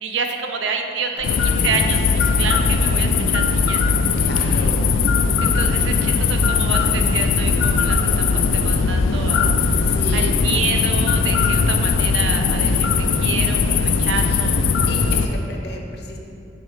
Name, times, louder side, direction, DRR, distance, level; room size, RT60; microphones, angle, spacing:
voice 1, 0.0-4.0 4.4-4.7 5.4-9.5 10.1-14.6, right 5 dB, 70° right, 4 dB, 0.5 m, -28 dB
voice 2, 1.1-1.7 2.2-2.5 4.2-4.8 9.8-10.3 12.6-12.7 14.0-14.4 14.9-16.2, left 2 dB, 55° left, 1 dB, 0.6 m, -35 dB
sound 1, 1.2-15.3, left 5 dB, 90° left, 0.3 m, -19 dB
6.9 x 3.3 x 4.6 m, 2.7 s
head